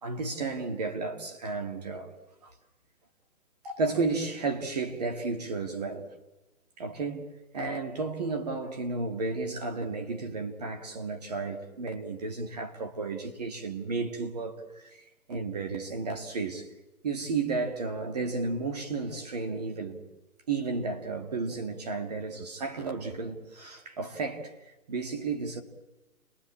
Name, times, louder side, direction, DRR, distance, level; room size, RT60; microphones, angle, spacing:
voice 1, 0.0-2.1 2.4-2.5 3.6-6.1 6.8-16.7 17.0-20.0 20.5-25.6, right 3 dB, 25° right, 2.2 m, -33 dB
30.0 x 21.5 x 8.7 m
hypercardioid pair, 175°, 45 cm